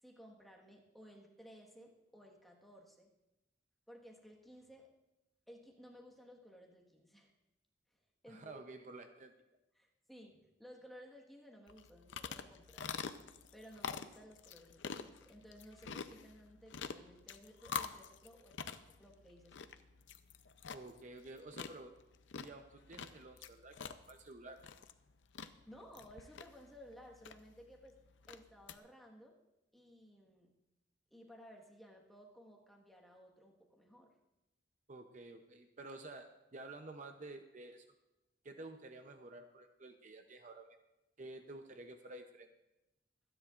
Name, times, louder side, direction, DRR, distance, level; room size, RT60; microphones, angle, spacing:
voice 1, 0.0-3.1 3.9-4.9 5.5-7.3 7.9-8.0 8.2-8.6 9.7-12.9 13.5-19.7 25.7-28.0 28.3-29.4 29.7-30.5 31.1-34.1, equal, ahead, -1 dB, 1.4 m, -57 dB
voice 2, 8.3-9.3 20.7-21.9 22.4-24.6 34.9-37.8 38.4-40.8 41.2-42.5, right 2 dB, 40° right, 6 dB, 0.6 m, -51 dB
sound 1, 11.7-28.8, left 6 dB, 85° left, 0.6 m, -47 dB
25.0 x 10.0 x 2.5 m, 0.97 s
head